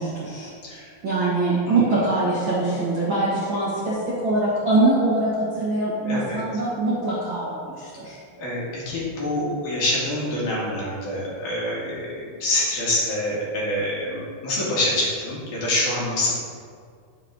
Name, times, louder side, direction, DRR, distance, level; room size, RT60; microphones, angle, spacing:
voice 1, 0.0-0.5 1.0-8.2, right 2 dB, 80° right, -8 dB, 1.1 m, -23 dB
voice 2, 1.7-2.0 6.0-6.6 8.4-16.4, left 1 dB, 50° left, -6 dB, 3.0 m, -26 dB
12.0 x 7.2 x 3.7 m, 2.1 s
omnidirectional pair, 5.2 m